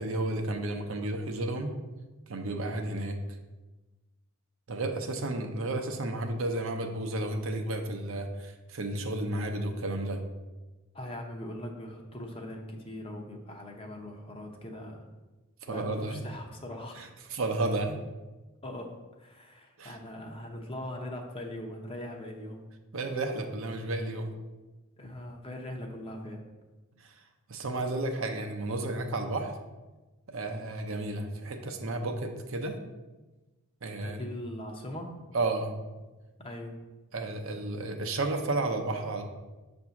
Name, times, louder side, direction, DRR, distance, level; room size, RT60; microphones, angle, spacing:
voice 1, 0.0-1.8 2.3-3.2 4.7-10.2 15.7-16.2 17.0-17.1 17.3-18.0 19.8-20.0 22.9-24.3 27.0-27.1 27.5-29.5 30.3-32.8 33.8-34.2 35.3-35.7 37.1-39.2, right 2 dB, 65° right, 4 dB, 0.7 m, -32 dB
voice 2, 10.9-15.1 15.7-17.1 18.6-22.6 25.0-26.4 34.0-35.2 36.4-36.8, left 1 dB, 25° left, 2 dB, 0.7 m, -41 dB
7.1 x 2.7 x 5.8 m, 1.2 s
head